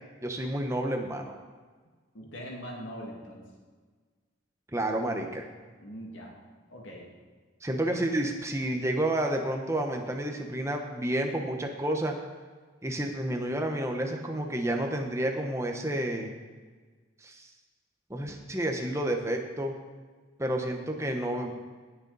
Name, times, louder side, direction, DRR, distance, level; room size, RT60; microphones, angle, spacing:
voice 1, 0.2-1.3 4.7-5.5 7.6-12.2 12.8-16.3 17.2-17.5 18.1-19.7 20.4-21.5, right 1 dB, 15° right, 3 dB, 1.0 m, -30 dB
voice 2, 2.1-3.4 5.8-6.3 6.7-7.1, equal, 80° left, -2 dB, 2.2 m, -41 dB
18.5 x 6.7 x 4.1 m, 1.4 s
head